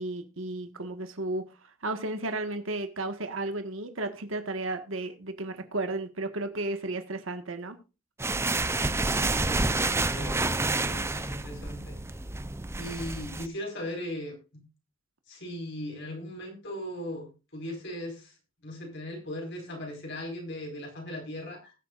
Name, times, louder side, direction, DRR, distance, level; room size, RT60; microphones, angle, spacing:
voice 1, 0.0-1.5 1.8-7.8, right 2 dB, 80° right, 7 dB, 1.6 m, -33 dB
sound 1, 8.2-13.5, right 2 dB, 15° right, 0.6 m, -29 dB
voice 2, 10.1-12.0 12.8-14.6 15.3-17.3 17.5-18.3 18.6-21.7, left 1 dB, 60° left, 1 dB, 4.9 m, -38 dB
20.5 x 8.4 x 2.5 m, 0.30 s
head